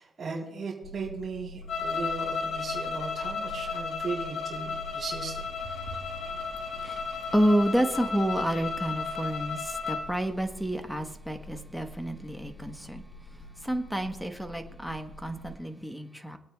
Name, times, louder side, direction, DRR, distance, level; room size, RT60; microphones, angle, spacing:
voice 1, 0.0-5.5, right 4 dB, 40° right, -5 dB, 3.6 m, -37 dB
sound 1, 0.8-15.6, left 1 dB, 85° left, 1.2 m, -46 dB
sound 2, 1.7-10.1, left 5 dB, 60° left, 3.2 m, -34 dB
voice 2, 5.8-13.0 13.6-16.4, right 1 dB, ahead, 6 dB, 1.1 m, -30 dB
24.0 x 8.9 x 2.3 m, 0.87 s
cardioid pair, 90°, 0 cm